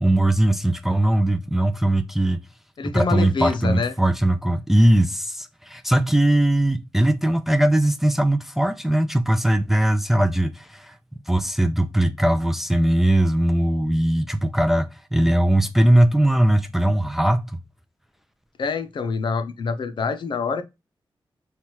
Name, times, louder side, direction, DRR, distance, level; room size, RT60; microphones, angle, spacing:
voice 1, 0.0-2.4 2.8-11.0 11.3-17.6, right 1 dB, 5° right, 0.4 m, -20 dB
voice 2, 2.8-3.9 18.6-20.6, left 4 dB, 70° left, 0.6 m, -26 dB
5.6 x 2.3 x 3.0 m
wide cardioid pair, 135°, 8 cm